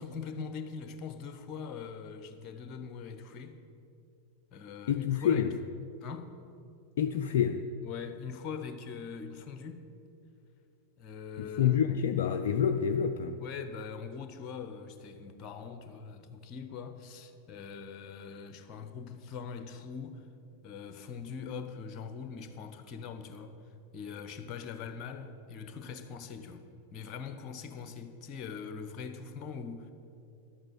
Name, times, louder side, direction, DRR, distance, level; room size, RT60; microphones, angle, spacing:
voice 1, 0.0-3.6 4.5-5.5 6.0-6.3 7.8-9.9 11.0-11.8 13.3-20.3 20.6-23.5 23.9-26.6 26.9-29.9, left 6 dB, 35° left, 8 dB, 1.0 m, -42 dB
voice 2, 4.9-5.5 7.0-7.7 11.4-13.4, left 8 dB, 55° left, 7 dB, 0.4 m, -27 dB
11.5 x 8.9 x 6.4 m, 2.7 s
figure-of-eight pair, 90°, 0 cm